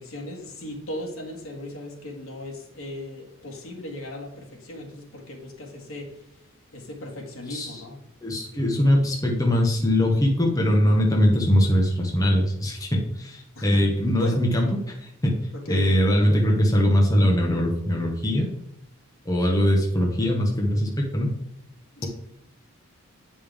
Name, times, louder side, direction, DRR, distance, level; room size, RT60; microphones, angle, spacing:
voice 1, 0.0-6.1 6.7-8.0 13.6-13.9 14.2-14.4 15.5-16.0 19.4-19.5 22.0-22.1, left 1 dB, 70° left, 0 dB, 2.0 m, -37 dB
voice 2, 7.5-7.8 8.2-14.7 15.0-15.4 15.7-18.5 19.2-21.3, equal, 15° left, -1 dB, 1.0 m, -21 dB
8.8 x 5.4 x 3.5 m, 0.79 s
head